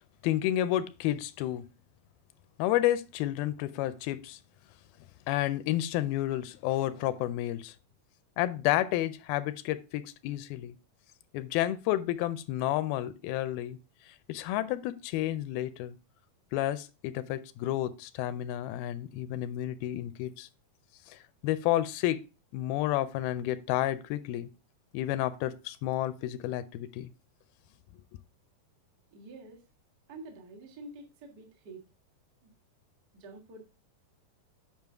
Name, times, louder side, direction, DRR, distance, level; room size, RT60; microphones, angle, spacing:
voice 1, 0.2-1.7 2.6-4.4 5.3-7.7 8.4-10.8 11.3-13.8 14.3-16.0 16.5-20.5 21.1-22.2 22.5-24.5 24.9-27.1, left 14 dB, 85° left, 2.4 m, -30 dB
voice 2, 29.1-29.6 30.1-31.8 32.4-32.5 33.1-33.6, right 2 dB, 45° right, 1.2 m, -47 dB
9.0 x 5.5 x 3.4 m
omnidirectional pair, 4.3 m